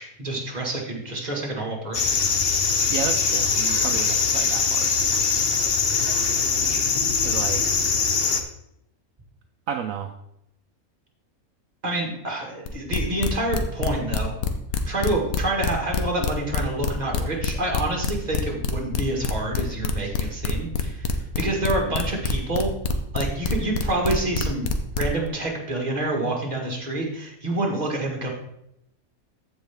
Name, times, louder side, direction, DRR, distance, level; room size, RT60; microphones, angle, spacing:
voice 1, 0.0-2.2 11.8-14.4 14.9-22.7 23.1-24.7 25.0-28.3, right 2 dB, 30° right, 0 dB, 1.9 m, -27 dB
sound 1, 1.9-8.4, left 5 dB, 50° left, 1.0 m, -22 dB
voice 2, 2.9-5.0 7.2-7.8 9.7-10.1, right 8 dB, 70° right, 6 dB, 1.0 m, -32 dB
sound 2, 12.7-25.3, left 6 dB, 85° left, 1.3 m, -26 dB
14.5 x 4.9 x 3.6 m, 0.80 s
omnidirectional pair, 1.5 m